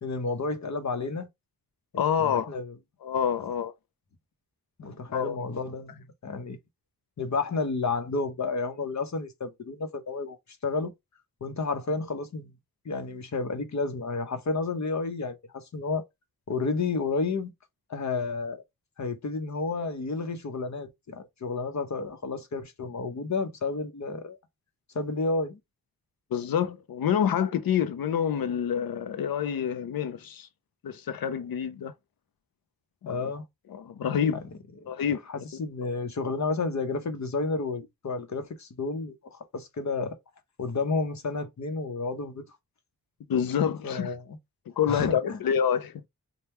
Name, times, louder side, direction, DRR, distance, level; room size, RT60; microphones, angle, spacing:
voice 1, 0.0-1.3 2.2-2.7 4.8-6.6 7.2-10.4 10.6-10.9 11.4-12.5 12.8-16.0 16.5-17.5 17.9-18.6 19.0-24.4 24.9-25.6 33.0-33.4 34.8-34.9 35.3-40.2 40.6-42.4 43.8-44.4 44.9-45.4, left 3 dB, 50° left, 0.8 m, -31 dB
voice 2, 1.9-2.5 3.0-3.7 5.1-5.4 26.3-30.5 30.8-31.9 33.0-33.2 33.7-34.4 34.9-35.2 43.3-44.1 44.8-46.1, left 8 dB, 75° left, 0.6 m, -27 dB
3.5 x 2.2 x 4.2 m
wide cardioid pair, 115°, 35 cm